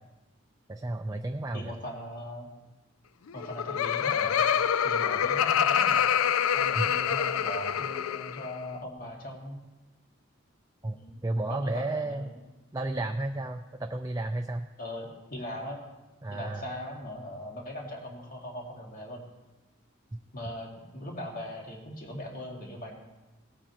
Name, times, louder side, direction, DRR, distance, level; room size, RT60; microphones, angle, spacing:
voice 1, 0.7-1.7 6.8-6.9 10.8-12.3 12.7-14.7 16.2-16.7, right 2 dB, 15° right, 5 dB, 0.4 m, -32 dB
voice 2, 1.5-2.5 3.3-6.0 6.5-9.6 10.9-11.2 11.5-12.4 14.8-15.8 16.3-19.2 20.3-22.9, left 1 dB, 45° left, -1 dB, 2.1 m, -40 dB
Laughter, 3.3-8.5, left 8 dB, 85° left, 0.4 m, -26 dB
18.5 x 8.9 x 3.0 m, 1.1 s
head